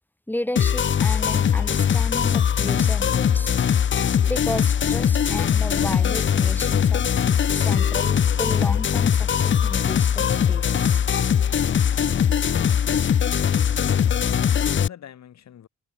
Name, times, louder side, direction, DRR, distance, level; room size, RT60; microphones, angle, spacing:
voice 1, 0.3-3.6 4.2-7.1 7.5-11.0, left 1 dB, 5° left, 5.8 m, -33 dB
sound 1, 0.6-14.9, left 8 dB, 40° left, 0.9 m, -21 dB
Organ, 3.2-13.4, right 12 dB, 75° right, 3.9 m, -51 dB
voice 2, 13.7-15.7, left 10 dB, 65° left, 5.0 m, -43 dB
cardioid pair, 90°, 30 cm